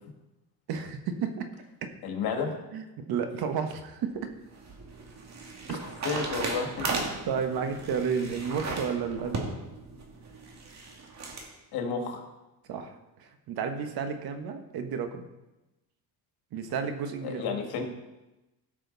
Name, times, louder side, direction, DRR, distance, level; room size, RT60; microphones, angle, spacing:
voice 1, 0.7-1.5 1.8-1.9 2.7-4.3 5.7-5.8 7.3-9.4 12.7-15.2 16.5-17.8, right 6 dB, 70° right, 7 dB, 1.4 m, -32 dB
voice 2, 2.0-2.5 6.0-6.9 11.7-12.2 17.2-17.8, left 5 dB, 80° left, 3 dB, 2.1 m, -31 dB
sound 1, 4.2-11.5, right 3 dB, 45° right, 2.1 m, -36 dB
16.5 x 6.3 x 4.1 m, 1.0 s
cardioid pair, 115°, 38 cm